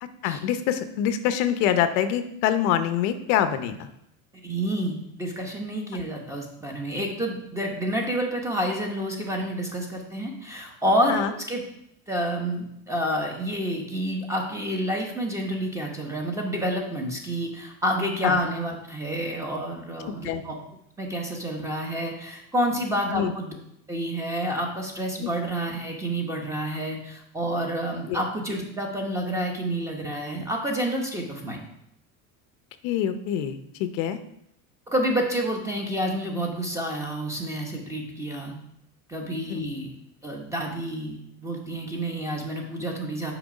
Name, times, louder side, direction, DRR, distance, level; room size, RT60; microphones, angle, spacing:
voice 1, 0.0-3.9 11.1-11.3 18.2-18.4 20.2-20.4 23.1-23.3 25.2-25.3 28.1-28.2 32.8-34.2 39.5-39.6, left 10 dB, 70° left, 10 dB, 0.8 m, -25 dB
voice 2, 4.4-11.6 12.1-20.5 21.0-23.6 23.9-31.7 34.9-38.6 39.1-39.9 40.2-43.3, equal, 10° right, 1 dB, 0.9 m, -29 dB
6.1 x 4.6 x 5.1 m, 0.76 s
supercardioid pair, 145°, 38 cm